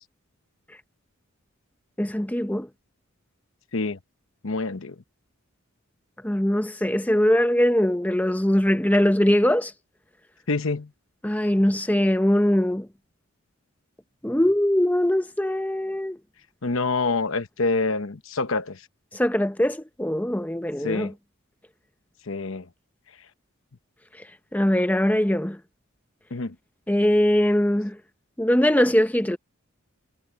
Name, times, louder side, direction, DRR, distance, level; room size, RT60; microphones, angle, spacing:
voice 1, 2.0-2.7 6.2-9.7 11.2-12.9 14.2-16.2 19.1-21.1 24.5-25.6 26.9-28.0 28.4-29.4, left 1 dB, 5° left, 0.7 m, -21 dB
voice 2, 4.4-4.9 10.5-10.9 16.6-18.8 20.8-21.1 22.3-22.7 26.3-26.5, left 3 dB, 65° left, 1.0 m, -26 dB
head